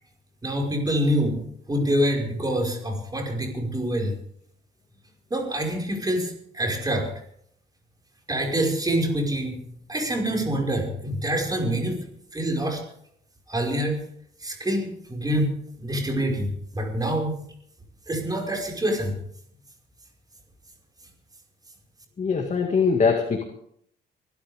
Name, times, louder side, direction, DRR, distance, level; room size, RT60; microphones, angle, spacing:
voice 1, 0.4-1.4 1.7-4.1 5.3-7.1 8.3-9.6 9.9-12.0 12.3-12.8 13.5-14.0 14.4-17.4 18.1-19.2, right 1 dB, 20° right, 0 dB, 5.2 m, -26 dB
voice 2, 22.2-23.4, left 5 dB, 35° left, 3 dB, 2.1 m, -22 dB
24.5 x 12.5 x 3.6 m, 0.67 s
cardioid pair, 90°, 20 cm